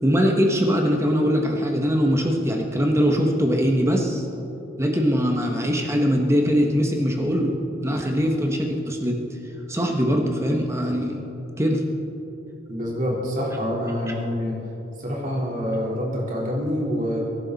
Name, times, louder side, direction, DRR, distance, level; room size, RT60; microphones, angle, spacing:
voice 1, 0.0-4.3 4.8-9.2 9.7-11.2 11.6-11.8, equal, 15° right, 2 dB, 1.2 m, -22 dB
voice 2, 12.7-14.6 15.0-17.2, equal, 45° right, -4 dB, 3.9 m, -26 dB
24.0 x 11.0 x 4.1 m, 2.9 s
head